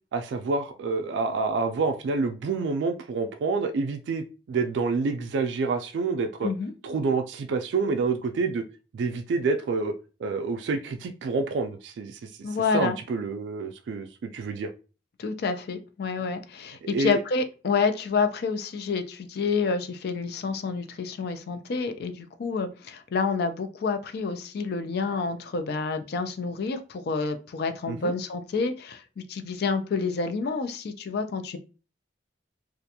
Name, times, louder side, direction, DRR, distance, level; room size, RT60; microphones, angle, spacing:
voice 1, 0.1-6.5 6.8-8.6 8.9-9.9 10.2-14.7 16.9-17.2 27.9-28.1, right 4 dB, 75° right, 6 dB, 0.3 m, -28 dB
voice 2, 12.4-13.0 15.2-31.6, left 4 dB, 60° left, 9 dB, 0.4 m, -28 dB
2.4 x 2.2 x 2.7 m, 0.33 s
head